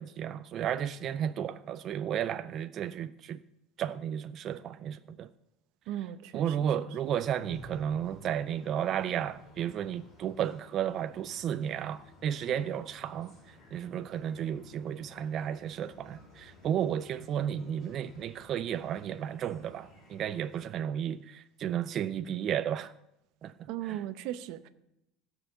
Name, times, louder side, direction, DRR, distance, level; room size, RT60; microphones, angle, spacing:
voice 1, 0.0-3.4 3.8-5.3 6.3-22.9 23.4-24.0, right 9 dB, 35° right, 0.4 m, -33 dB
voice 2, 5.9-6.6 23.7-24.7, right 12 dB, 60° right, 0.7 m, -37 dB
sound 1, 6.9-20.7, left 1 dB, 35° left, 5.1 m, -55 dB
16.0 x 5.6 x 6.9 m
cardioid pair, 165°, 0 cm